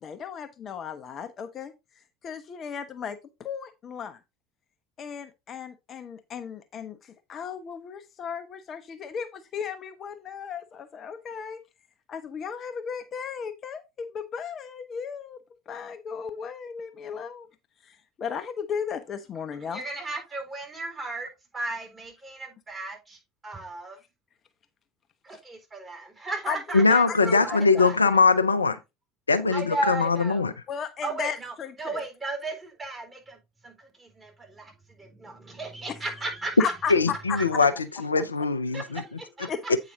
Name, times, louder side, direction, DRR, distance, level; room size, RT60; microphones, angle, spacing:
voice 1, 0.0-1.7 2.2-4.2 5.0-11.6 12.1-15.4 15.7-17.5 17.8-19.8 25.3-25.4 26.5-26.6 27.1-27.8 30.7-32.0 35.9-36.0 36.6-36.9 37.3-37.6 39.5-39.8, left 7 dB, 35° left, 0.7 m, -35 dB
voice 2, 19.6-24.0 25.2-28.2 29.5-30.4 31.0-36.7 37.3-37.4 38.7-39.5, right 2 dB, 20° right, 3.9 m, -35 dB
voice 3, 26.7-28.8 29.3-30.5 36.9-37.7 38.0-39.0, left 4 dB, 80° left, 0.5 m, -21 dB
8.4 x 4.9 x 3.9 m
figure-of-eight pair, 70°, 0 cm